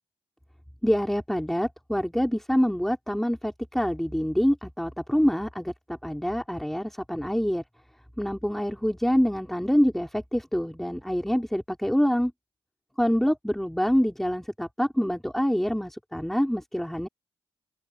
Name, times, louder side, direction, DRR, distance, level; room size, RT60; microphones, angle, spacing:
voice 1, 0.8-7.6 8.2-12.3 13.0-17.1, equal, 5° left, 5.0 m, -26 dB
open air
supercardioid pair, 55°, 11 cm